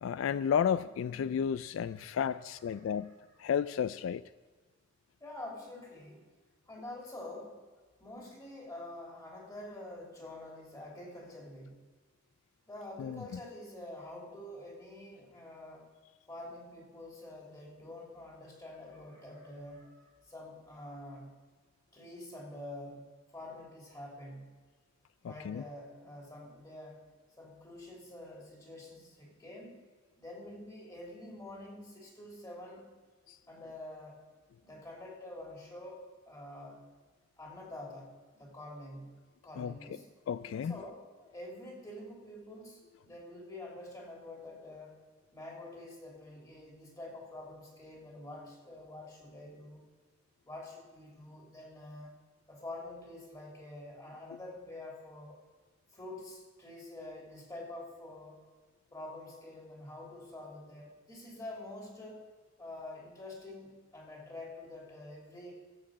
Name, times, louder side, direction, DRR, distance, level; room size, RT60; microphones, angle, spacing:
voice 1, 0.0-3.1 3.4-4.2 13.0-13.2 25.2-25.6 33.3-33.4 39.6-39.8 40.3-40.8, left 8 dB, 70° left, 15 dB, 0.3 m, -32 dB
voice 2, 2.7-3.1 5.2-6.3 6.7-7.6 8.0-11.8 12.7-15.9 16.3-21.3 21.9-24.5 25.2-27.1 27.4-29.8 30.2-32.9 33.5-34.2 34.6-36.8 37.4-39.1 39.4-40.1 40.7-45.0 45.3-49.8 50.4-52.1 52.5-55.4 55.9-58.4 58.9-62.2 62.6-65.5, left 1 dB, 20° left, -2 dB, 3.0 m, -47 dB
12.5 x 7.5 x 7.5 m, 1.4 s
head